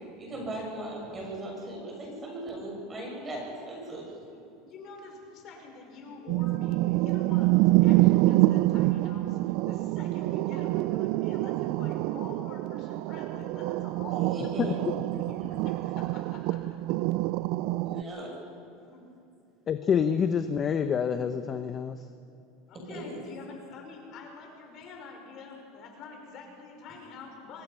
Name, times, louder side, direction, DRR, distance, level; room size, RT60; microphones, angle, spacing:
voice 1, 0.2-4.0 14.1-14.8 17.8-18.3 22.9-23.2, right 1 dB, 25° right, -1 dB, 7.0 m, -38 dB
voice 2, 4.6-14.5 14.7-17.0 17.9-18.2 18.7-19.1 22.7-27.6, left 4 dB, 50° left, 2 dB, 5.5 m, -47 dB
sound 1, 6.3-18.0, right 18 dB, 60° right, 0.4 m, -26 dB
voice 3, 19.7-22.0, left 7 dB, 30° left, 9 dB, 0.9 m, -27 dB
24.5 x 20.0 x 5.8 m, 2.6 s
supercardioid pair, 125°, 0 cm